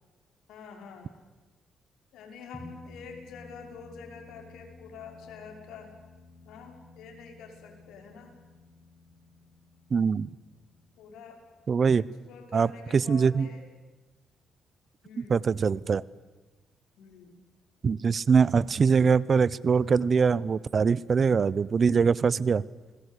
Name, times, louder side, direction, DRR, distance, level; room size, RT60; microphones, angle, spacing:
voice 1, 0.5-1.1 2.1-5.9 6.4-8.3 11.0-11.4 12.3-13.7 15.0-15.4 17.0-17.3, left 6 dB, 80° left, 3 dB, 5.8 m, -46 dB
sound 1, 2.5-13.2, left 2 dB, 10° right, 6.4 m, -53 dB
voice 2, 9.9-10.3 11.7-12.0 12.5-13.5 15.2-16.0 17.8-22.6, right 5 dB, 45° right, 22 dB, 0.8 m, -23 dB
29.5 x 20.5 x 8.4 m, 1.2 s
cardioid pair, 90°, 0 cm